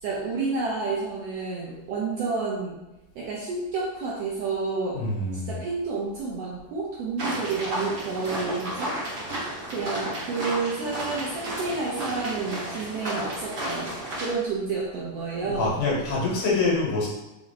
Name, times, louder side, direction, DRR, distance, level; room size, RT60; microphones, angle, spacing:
voice 1, 0.0-2.8 3.1-5.0 5.3-9.0 9.7-15.7, right 4 dB, 75° right, -5 dB, 1.5 m, -30 dB
voice 2, 5.0-5.6 15.4-17.1, left 3 dB, 80° left, -4 dB, 2.7 m, -25 dB
sound 1, 7.2-14.3, right 1 dB, 55° right, 0.9 m, -33 dB
5.6 x 2.1 x 4.0 m, 0.99 s
omnidirectional pair, 3.5 m